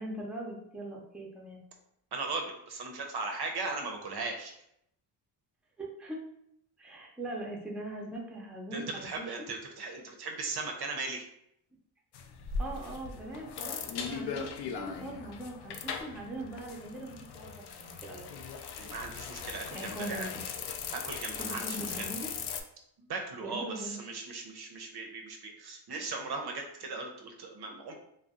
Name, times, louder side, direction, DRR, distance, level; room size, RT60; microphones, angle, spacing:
voice 1, 0.0-1.6 5.8-6.2 6.8-9.5 12.6-14.5 14.7-18.3 19.7-20.4 21.4-22.3 23.4-24.0, right 1 dB, ahead, -2 dB, 0.6 m, -41 dB
voice 2, 2.1-4.5 8.7-11.3 18.8-20.3 20.9-22.1 23.0-27.9, right 3 dB, 55° right, 3 dB, 0.6 m, -38 dB
sound 1, 12.1-22.6, left 6 dB, 55° left, 0.5 m, -39 dB
2.5 x 2.0 x 3.6 m, 0.76 s
cardioid pair, 75°, 49 cm